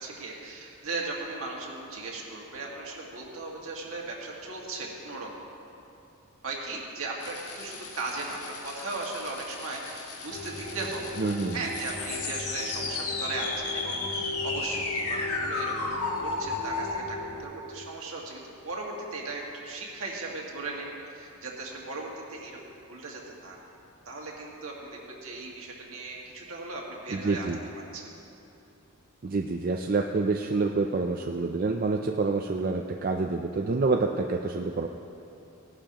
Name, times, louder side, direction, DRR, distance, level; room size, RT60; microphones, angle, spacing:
voice 1, 0.0-5.3 6.4-8.4 8.6-11.0 11.5-20.9 21.1-22.6 22.9-23.6 24.1-27.5 27.9-28.0, right 3 dB, 65° right, -2 dB, 1.9 m, -37 dB
sound 1, 7.2-17.0, left 3 dB, 85° left, 1.4 m, -34 dB
sound 2, 10.3-17.4, left 2 dB, 50° left, 3.3 m, -39 dB
voice 2, 11.2-11.6 27.1-27.6 29.2-34.9, right 3 dB, 40° right, 3 dB, 0.4 m, -27 dB
17.5 x 11.5 x 3.0 m, 2.7 s
head